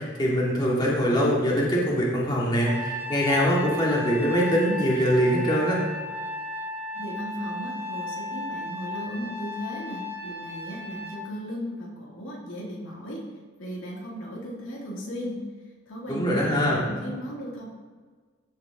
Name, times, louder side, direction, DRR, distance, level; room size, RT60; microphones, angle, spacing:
voice 1, 0.0-5.8 16.1-16.8, equal, 20° left, -5 dB, 2.2 m, -23 dB
Trumpet, 2.6-11.2, left 1 dB, 15° right, 1.0 m, -35 dB
voice 2, 6.9-13.2 13.6-15.4 15.9-17.7, equal, 90° left, -4 dB, 2.7 m, -36 dB
14.5 x 5.7 x 3.8 m, 1.5 s
head